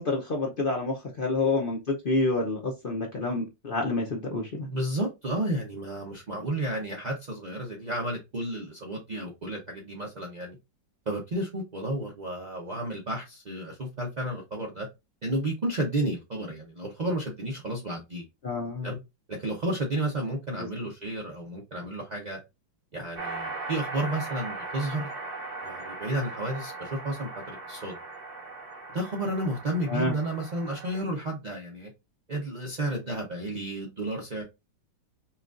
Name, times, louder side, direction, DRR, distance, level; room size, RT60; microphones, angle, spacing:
voice 1, 0.0-4.7 18.4-18.9 20.6-20.7 29.9-30.1, left 3 dB, 60° left, 0.5 m, -28 dB
voice 2, 4.7-10.6 11.1-14.9 15.2-18.2 18.8-19.0 19.3-22.4 22.9-25.1 25.6-28.0 28.9-31.9 32.3-34.4, right 1 dB, 55° right, 0.4 m, -32 dB
sound 1, 23.2-31.0, right 3 dB, 40° right, 0.9 m, -39 dB
5.7 x 2.4 x 2.5 m
omnidirectional pair, 2.0 m